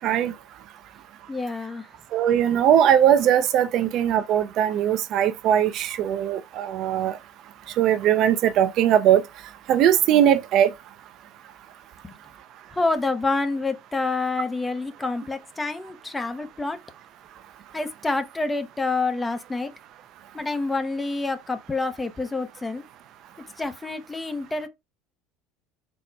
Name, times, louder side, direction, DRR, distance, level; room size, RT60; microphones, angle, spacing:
voice 1, 0.0-0.3 2.1-7.1 7.8-9.2 9.7-10.7, right 10 dB, 55° right, 0.5 m, -20 dB
voice 2, 1.3-1.9 12.0-12.1 12.7-16.8 17.7-19.7 20.3-22.8 23.6-24.7, left 3 dB, 15° left, 0.6 m, -27 dB
4.1 x 2.1 x 4.5 m
supercardioid pair, 100°, 0 cm